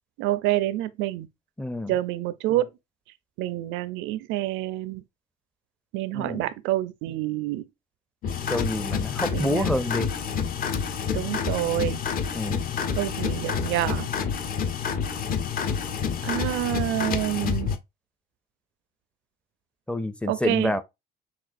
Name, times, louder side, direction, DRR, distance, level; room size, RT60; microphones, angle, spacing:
voice 1, 0.2-1.3 1.9-2.7 3.4-5.0 5.9-7.7 9.3-9.7 11.1-12.0 12.9-14.1 16.2-17.7 20.3-20.7, right 14 dB, 85° right, 0.5 m, -27 dB
voice 2, 1.6-1.9 6.1-6.5 8.5-10.1 12.3-12.8 19.9-20.8, left 1 dB, 5° left, 0.4 m, -28 dB
sound 1, 8.2-17.8, left 6 dB, 50° left, 0.7 m, -28 dB
6.0 x 2.4 x 2.5 m
cardioid pair, 125°, 19 cm